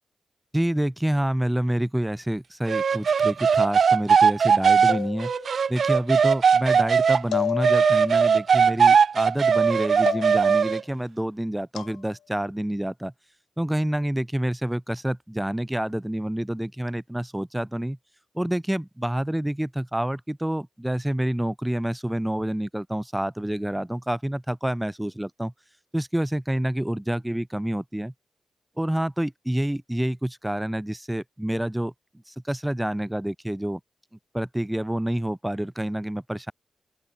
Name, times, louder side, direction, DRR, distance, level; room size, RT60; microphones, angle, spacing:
voice 1, 0.5-5.3 5.7-13.1 13.6-18.0 18.3-25.5 25.9-28.1 28.8-31.9 32.3-33.8 34.3-36.5, right 1 dB, 10° right, 2.5 m, -28 dB
sound 1, 2.7-7.2 7.6-10.8, right 6 dB, 70° right, 1.2 m, -19 dB
sound 2, 4.9-5.7 7.3-8.3 10.1-10.7 11.8-12.0, left 10 dB, 85° left, 3.1 m, -31 dB
open air
supercardioid pair, 40°, 0 cm